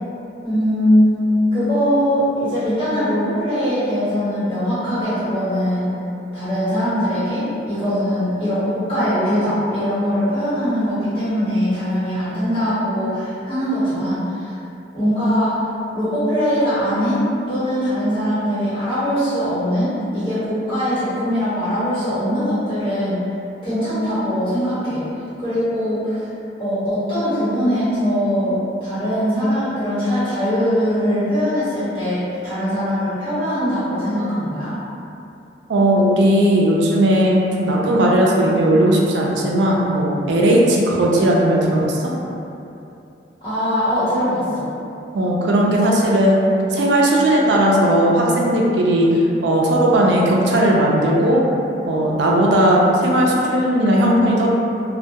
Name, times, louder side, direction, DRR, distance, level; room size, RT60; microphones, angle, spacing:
voice 1, 0.4-6.0 6.3-14.5 14.9-23.2 23.6-25.0 25.4-26.3 26.6-34.7 43.4-44.7, equal, 30° left, -14 dB, 1.2 m, -21 dB
voice 2, 35.7-42.1 45.1-46.4 46.7-49.1 49.4-51.4 51.9-54.5, right 1 dB, 75° right, -2 dB, 0.3 m, -16 dB
2.2 x 2.1 x 2.7 m, 2.7 s
head